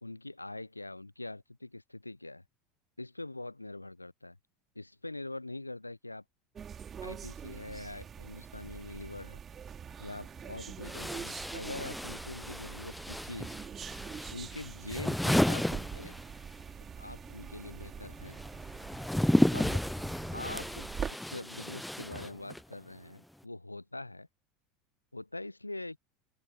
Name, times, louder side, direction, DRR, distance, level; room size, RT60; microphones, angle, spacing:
voice 1, 0.0-2.4 3.0-4.4 4.7-6.2 7.0-9.4 10.0-13.6 14.3-16.2 17.0-18.4 19.5-19.8 20.3-24.3 25.1-26.0, left 2 dB, 85° left, 0.7 m, -43 dB
sound 1, 6.5-21.1, right 7 dB, 30° right, 3.9 m, -44 dB
sound 2, 9.9-10.0 10.8-16.6 16.9-22.7, left 1 dB, 5° left, 0.5 m, -33 dB
open air
figure-of-eight pair, 75°, 0 cm